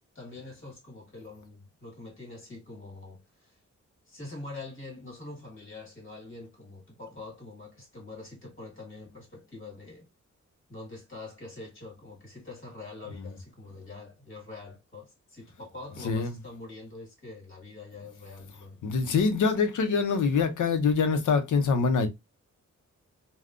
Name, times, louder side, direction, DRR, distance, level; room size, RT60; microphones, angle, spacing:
voice 1, 0.1-3.6 4.1-10.1 10.7-18.8, left 2 dB, 40° left, 1.5 m, -44 dB
voice 2, 16.0-16.3 18.8-22.1, left 5 dB, 85° left, 0.6 m, -25 dB
3.5 x 2.2 x 2.4 m
wide cardioid pair, 160°, 30 cm